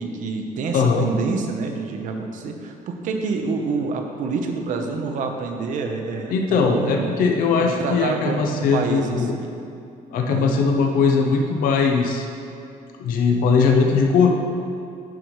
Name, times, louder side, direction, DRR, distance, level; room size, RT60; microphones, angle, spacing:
voice 1, 0.0-7.1 7.6-9.6 10.3-10.5, right 4 dB, 65° right, 3 dB, 0.8 m, -27 dB
voice 2, 0.7-1.1 6.3-9.3 10.1-12.2 13.0-14.3, left 5 dB, 75° left, 2 dB, 0.7 m, -19 dB
10.5 x 5.3 x 3.1 m, 2.4 s
cardioid pair, 155°, 14 cm